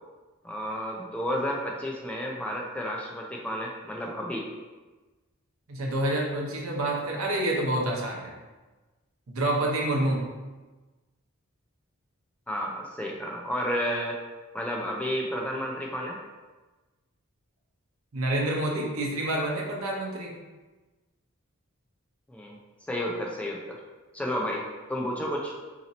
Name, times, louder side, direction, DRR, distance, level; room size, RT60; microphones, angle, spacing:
voice 1, 0.4-4.5 12.5-14.2 14.5-16.2 22.3-22.6 22.9-23.8 24.1-24.6 24.9-25.5, equal, 5° left, -1 dB, 0.3 m, -31 dB
voice 2, 5.7-8.3 9.3-10.2 18.1-20.3, right 1 dB, 75° right, -1 dB, 0.7 m, -28 dB
2.9 x 2.6 x 4.0 m, 1.2 s
head